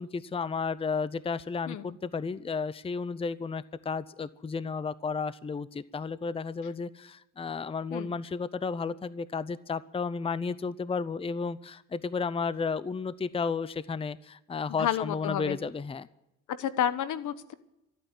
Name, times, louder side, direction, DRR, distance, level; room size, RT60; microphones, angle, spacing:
voice 1, 0.0-16.1, left 5 dB, 20° left, 17 dB, 0.6 m, -33 dB
voice 2, 1.7-2.0 7.9-8.1 14.8-15.6 16.5-17.5, left 10 dB, 75° left, 14 dB, 1.1 m, -30 dB
13.5 x 9.1 x 9.4 m, 0.90 s
cardioid pair, 90°, 30 cm